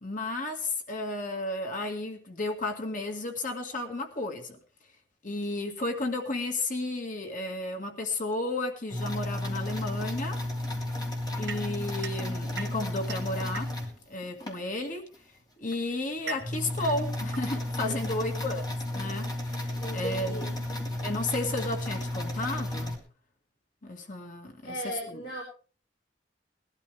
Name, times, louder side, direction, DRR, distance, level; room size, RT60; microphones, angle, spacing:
voice 1, 0.0-4.6 5.2-10.4 11.4-13.7 14.1-15.1 15.6-18.6 18.9-20.5 21.0-22.9 23.8-25.2, left 2 dB, 45° left, 3 dB, 2.0 m, -33 dB
sound 1, 8.9-14.6 15.1-15.2 15.7-15.8 16.0-23.0, left 1 dB, 25° left, 3.4 m, -33 dB
sound 2, 11.5-14.1 15.1-18.5, right 6 dB, 85° right, 1.5 m, -43 dB
voice 2, 19.7-20.7 24.6-25.4, right 1 dB, 60° left, -2 dB, 4.5 m, -37 dB
21.0 x 12.5 x 3.4 m, 0.41 s
head